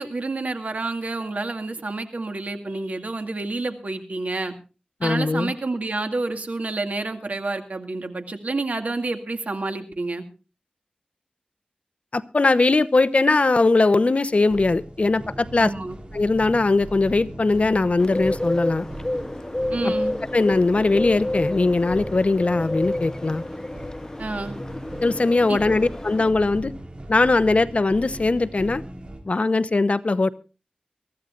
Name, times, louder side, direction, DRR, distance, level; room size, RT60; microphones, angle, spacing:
voice 1, 0.0-4.5 5.0-10.2 15.6-16.0 19.7-20.1 24.2-24.5 25.5-25.6, right 2 dB, 70° right, 6 dB, 2.1 m, -29 dB
voice 2, 5.0-5.5 12.1-15.7 16.1-18.9 19.8-19.9 20.3-23.4 25.0-26.7 27.1-28.8 29.3-30.3, left 3 dB, 55° left, 15 dB, 0.8 m, -20 dB
sound 1, 14.5-29.2, right 1 dB, 45° right, 3.9 m, -39 dB
Bird, 18.0-26.3, left 1 dB, 25° left, 0.8 m, -29 dB
23.5 x 14.5 x 2.5 m, 0.32 s
wide cardioid pair, 75°, 3 cm